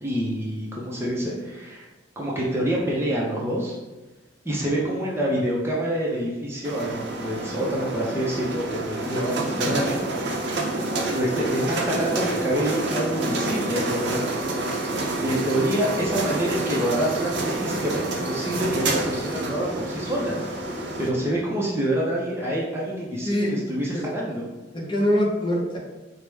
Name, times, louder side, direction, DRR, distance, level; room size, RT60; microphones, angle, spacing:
voice 1, 0.0-1.9 2.2-3.7 4.4-10.0 11.0-14.5 15.2-20.4 21.0-24.5, right 1 dB, 15° right, -4 dB, 0.5 m, -27 dB
sound 1, 6.6-21.1, right 2 dB, 65° right, 0.5 m, -28 dB
voice 2, 23.2-23.6 23.9-24.0 24.7-25.8, equal, 25° left, -3 dB, 0.8 m, -23 dB
4.6 x 2.1 x 3.3 m, 1.2 s
head